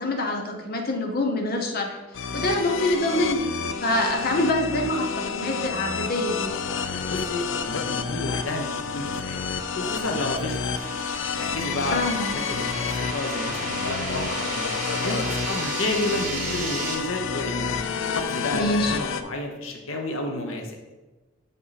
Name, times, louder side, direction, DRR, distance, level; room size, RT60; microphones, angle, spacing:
voice 1, 0.0-2.0 2.3-3.5 3.8-6.5 11.9-12.3 12.9-13.0 18.5-18.9, left 1 dB, 50° left, 2 dB, 1.0 m, -25 dB
sound 1, 2.1-19.2, left 6 dB, 65° left, 0.4 m, -30 dB
sound 2, 6.5-16.9, right 3 dB, 40° right, 1.5 m, -36 dB
voice 2, 7.1-9.4 9.7-11.0 11.4-12.0 12.3-14.7 15.0-17.7 18.1-20.8, left 2 dB, 85° left, 3 dB, 0.9 m, -31 dB
7.1 x 5.5 x 4.1 m, 1.2 s
head